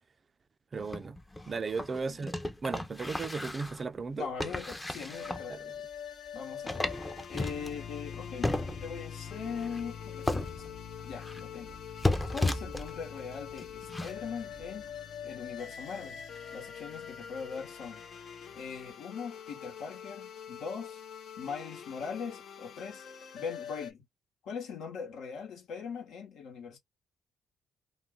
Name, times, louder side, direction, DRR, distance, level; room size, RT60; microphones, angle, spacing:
voice 1, 0.7-1.2 1.5-2.3 2.6-4.3 5.5-5.6, right 4 dB, 35° right, 0.4 m, -35 dB
sound 1, 0.8-3.8 4.4-5.5 5.9-6.0 6.3-6.4 6.7-8.2 8.4-9.1 9.6-9.8 10.2-11.4 11.7-13.1 13.6-14.1 14.6-14.7, left 2 dB, 15° left, 0.5 m, -34 dB
voice 2, 4.2-5.7 6.3-8.5 8.8-10.7 11.1-11.8 12.3-14.8 15.2-16.2 16.5-18.0 18.5-21.0 21.4-23.0 23.3-24.0 24.4-26.8, left 6 dB, 85° left, 1.0 m, -41 dB
sound 2, 5.1-23.9, left 8 dB, 60° left, 0.6 m, -45 dB
sound 3, 7.5-18.9, left 8 dB, 40° left, 1.0 m, -48 dB
2.4 x 2.2 x 3.5 m
cardioid pair, 90°, 0 cm